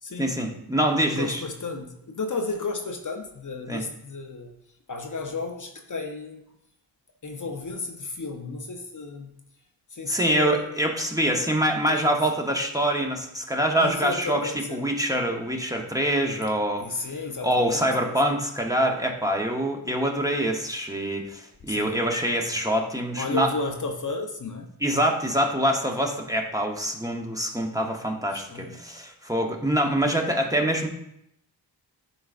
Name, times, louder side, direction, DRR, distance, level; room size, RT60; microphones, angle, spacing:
voice 1, 0.2-1.4 3.7-3.8 10.1-17.1 17.4-23.5 24.8-30.9, right 1 dB, 10° right, 1 dB, 0.9 m, -25 dB
voice 2, 1.2-4.5 4.9-6.4 7.2-9.4 9.9-10.8 11.9-12.1 13.8-14.8 16.8-17.9 18.2-18.4 21.7-22.0 23.2-24.7 28.3-28.8, left 3 dB, 45° left, 3 dB, 0.8 m, -33 dB
9.9 x 3.9 x 2.5 m, 0.77 s
cardioid pair, 45°, 45 cm